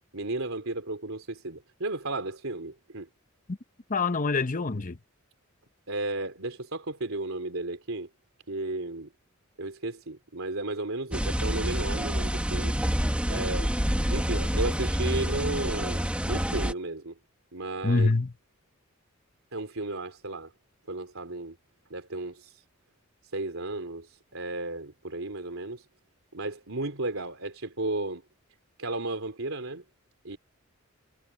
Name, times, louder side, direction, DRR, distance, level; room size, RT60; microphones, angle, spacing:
voice 1, 0.1-3.1 5.9-8.1 8.5-9.1 9.6-12.8 13.3-13.8 14.1-17.2 17.5-18.1 19.5-20.5 20.9-21.6 21.9-22.6 23.3-25.9 26.3-28.2 28.8-29.8 30.2-30.4, right 2 dB, 75° right, 3.5 m, -34 dB
voice 2, 3.9-5.0 17.8-18.3, left 3 dB, 40° left, 0.9 m, -25 dB
sound 1, 11.1-16.7, equal, 5° right, 1.7 m, -27 dB
head